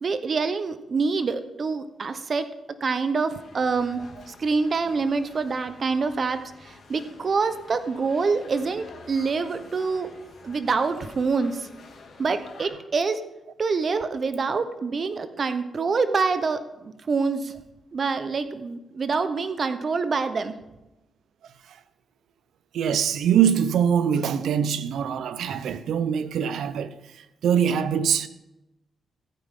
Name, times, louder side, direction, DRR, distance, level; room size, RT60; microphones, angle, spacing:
voice 1, 0.0-2.5 2.8-10.1 10.4-11.7 12.2-13.2 13.6-17.5 17.9-20.5, right 4 dB, 45° right, 0.8 m, -26 dB
sound 1, 3.3-12.7, left 4 dB, 65° left, 2.2 m, -49 dB
voice 2, 22.7-27.0 27.4-28.3, right 8 dB, 85° right, 0.6 m, -23 dB
14.0 x 8.9 x 3.7 m
cardioid pair, 90°, 0 cm